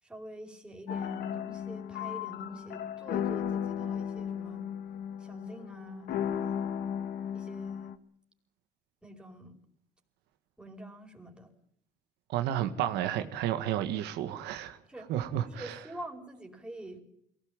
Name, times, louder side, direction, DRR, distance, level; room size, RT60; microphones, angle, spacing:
voice 1, 0.0-4.7 5.2-6.8 7.3-7.9 9.0-9.5 10.6-11.5 14.9-15.1 15.4-17.0, right 1 dB, 5° right, 4.9 m, -46 dB
sound 1, 0.9-8.0, left 9 dB, 70° left, 1.6 m, -35 dB
voice 2, 12.3-14.8 15.1-15.7, right 11 dB, 90° right, 1.6 m, -31 dB
23.0 x 18.0 x 8.9 m
cardioid pair, 110°, 17 cm